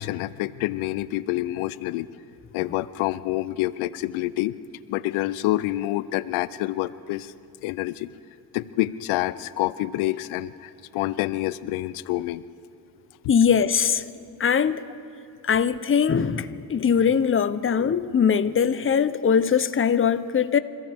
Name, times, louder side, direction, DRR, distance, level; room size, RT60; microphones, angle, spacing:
voice 1, 0.0-2.1 2.5-4.5 4.9-7.3 7.6-8.1 8.5-12.4, left 16 dB, 90° left, 0.5 m, -27 dB
voice 2, 13.3-14.0 14.4-14.8 15.4-20.6, left 7 dB, 25° left, 0.7 m, -21 dB
27.0 x 15.0 x 3.5 m
supercardioid pair, 65°, 47 cm